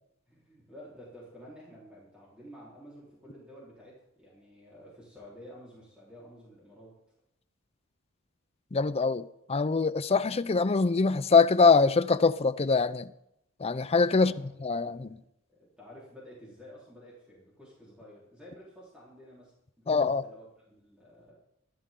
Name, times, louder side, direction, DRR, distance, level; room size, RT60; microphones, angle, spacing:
voice 1, 0.3-6.9 14.1-21.3, equal, 5° right, 4.1 m, -51 dB
voice 2, 8.7-13.1 13.6-14.3 14.6-15.2 19.9-20.2, left 4 dB, 30° left, 0.5 m, -24 dB
15.0 x 12.0 x 3.8 m
head